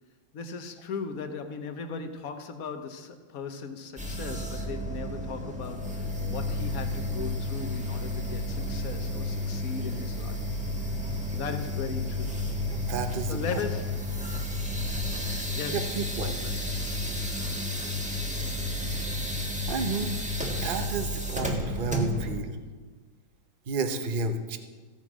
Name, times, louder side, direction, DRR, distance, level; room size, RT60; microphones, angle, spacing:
voice 1, 0.3-10.4 11.4-12.4 13.3-14.1 15.5-16.6, left 5 dB, 50° left, 7 dB, 1.2 m, -38 dB
sound 1, 4.0-22.4, left 1 dB, 5° right, 1.2 m, -32 dB
voice 2, 12.7-13.6 15.1-15.4 15.7-16.4 19.7-20.2 20.6-22.6 23.7-24.6, right 4 dB, 45° right, 7 dB, 0.6 m, -32 dB
15.5 x 8.9 x 6.2 m, 1.4 s
omnidirectional pair, 2.3 m